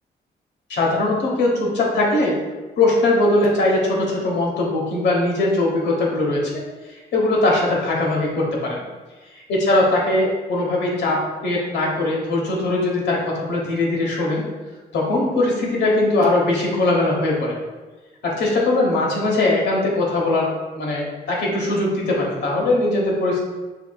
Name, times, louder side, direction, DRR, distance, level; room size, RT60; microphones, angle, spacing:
voice 1, 0.7-2.4 2.8-6.5 7.1-8.8 9.3-14.4 14.9-17.6 18.2-20.5 20.7-23.4, left 2 dB, 90° left, -2 dB, 1.1 m, -20 dB
5.7 x 3.3 x 2.3 m, 1.2 s
cardioid pair, 85°, 18 cm